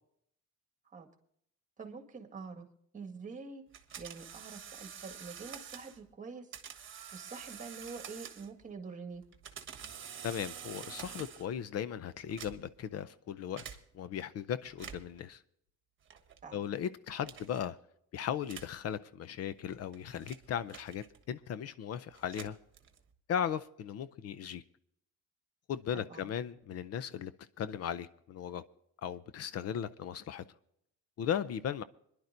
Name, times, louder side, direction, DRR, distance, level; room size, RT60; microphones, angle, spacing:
voice 1, 1.8-2.7 2.9-3.6 4.0-6.5 7.1-9.2 16.4-16.7 25.9-26.3, right 4 dB, 25° right, 1.8 m, -46 dB
sound 1, 3.7-6.0 6.5-8.6 9.2-11.6 12.2-12.8 13.6-13.8 14.7-15.2 16.1-16.4 17.2-17.6 18.4-18.8 19.6-21.3 22.1-23.1, right 8 dB, 40° right, 1.3 m, -48 dB
voice 2, 10.2-13.6 13.9-15.4 16.5-17.8 18.1-22.6 23.3-24.6 25.7-27.3 27.6-28.6 29.0-30.4 31.2-31.8, left 9 dB, 55° left, 0.6 m, -37 dB
26.0 x 11.0 x 2.6 m
cardioid pair, 150°, 30 cm